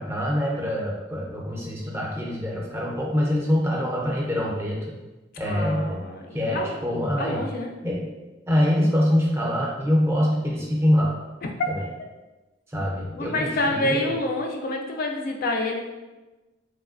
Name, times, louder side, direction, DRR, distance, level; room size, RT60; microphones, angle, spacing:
voice 1, 0.0-4.8 5.4-6.0 6.3-7.4 7.8-8.1 8.5-11.2 11.7-11.8 12.7-14.1, equal, 15° right, -3 dB, 0.5 m, -24 dB
voice 2, 5.4-6.8 7.2-7.7 11.4-11.5 13.2-15.8, left 1 dB, 50° left, 2 dB, 0.3 m, -27 dB
3.1 x 2.5 x 2.4 m, 1.1 s
head